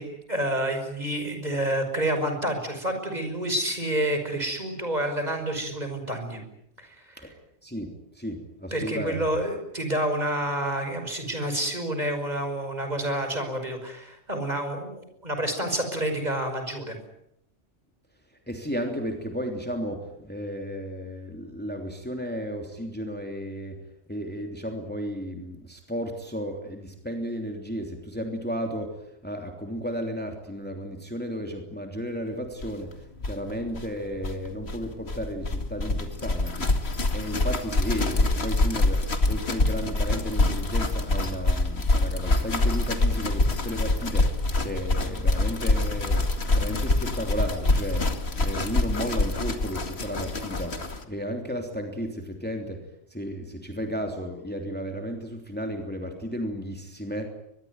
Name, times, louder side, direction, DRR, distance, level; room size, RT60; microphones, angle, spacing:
voice 1, 0.0-6.4 6.8-7.0 8.7-17.0, right 1 dB, 35° right, 6 dB, 5.8 m, -29 dB
voice 2, 7.6-9.2 18.5-23.8 24.1-29.0 29.2-32.9 33.2-36.7 37.1-46.2 46.5-52.8 53.1-57.3, equal, 10° left, 3 dB, 3.1 m, -33 dB
sound 1, 32.6-32.7 32.9-33.0 33.2-51.0, left 2 dB, 60° left, 2.5 m, -25 dB
24.0 x 21.5 x 9.5 m, 0.77 s
omnidirectional pair, 1.2 m